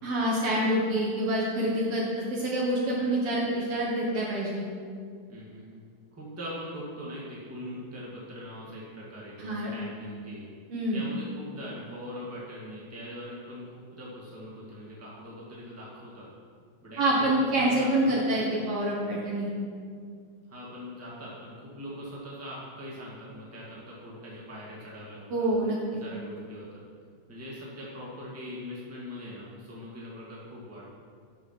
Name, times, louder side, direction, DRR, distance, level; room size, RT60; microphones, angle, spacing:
voice 1, 0.0-4.6 9.4-9.7 10.7-11.0 17.0-19.5 25.3-26.0, right 1 dB, 60° right, -5 dB, 2.0 m, -27 dB
voice 2, 5.3-5.8 6.1-10.5 10.9-16.3 16.8-18.2 18.5-18.6 20.5-25.6 26.0-26.8 27.3-30.8, equal, 5° right, -7 dB, 1.6 m, -41 dB
8.5 x 6.3 x 5.8 m, 2.1 s
omnidirectional pair, 3.3 m